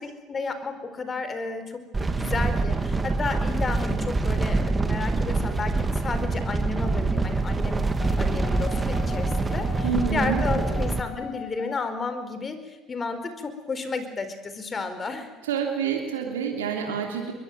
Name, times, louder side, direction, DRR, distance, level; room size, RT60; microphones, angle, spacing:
voice 1, 0.0-7.9 8.2-15.3, left 4 dB, 30° left, 10 dB, 4.6 m, -32 dB
sound 1, 1.9-11.0, right 3 dB, 20° right, 2.6 m, -25 dB
sound 2, 8.0-12.0, left 10 dB, 55° left, 1.9 m, -40 dB
voice 2, 9.8-10.4 10.7-10.8 15.4-17.3, right 7 dB, 85° right, 2 dB, 3.1 m, -28 dB
23.0 x 22.5 x 9.3 m, 1.1 s
hypercardioid pair, 70°, 0 cm